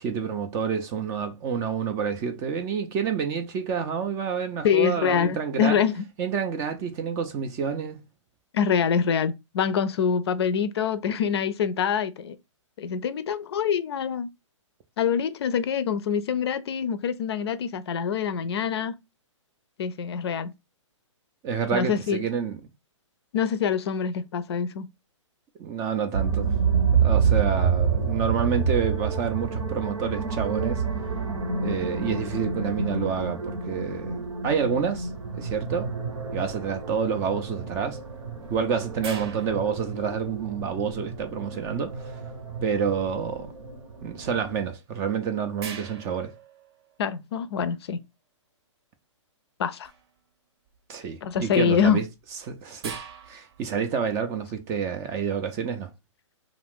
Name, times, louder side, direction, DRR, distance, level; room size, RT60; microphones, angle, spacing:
voice 1, 0.0-5.8 6.2-8.0 21.4-22.6 25.6-26.5 27.0-30.8 31.6-35.1 35.4-35.9 36.3-38.0 38.5-42.2 42.6-43.5 44.0-46.3 50.9-52.0 52.4-53.0 53.3-55.9, right 7 dB, 15° right, 0.3 m, -28 dB
voice 2, 4.6-6.0 8.5-12.4 12.8-14.3 15.0-19.0 19.8-20.5 21.7-22.2 23.3-24.9 47.0-48.0 49.6-49.9 51.2-52.0, left 7 dB, 55° left, 0.4 m, -25 dB
sound 1, 26.1-44.7, right 5 dB, 85° right, 1.0 m, -28 dB
sound 2, 39.0-40.6 44.7-44.8 45.6-47.2 49.8-50.2 50.7-51.1 51.9-53.9, right 6 dB, 50° right, 0.7 m, -42 dB
2.4 x 2.4 x 3.4 m
hypercardioid pair, 140°, 16 cm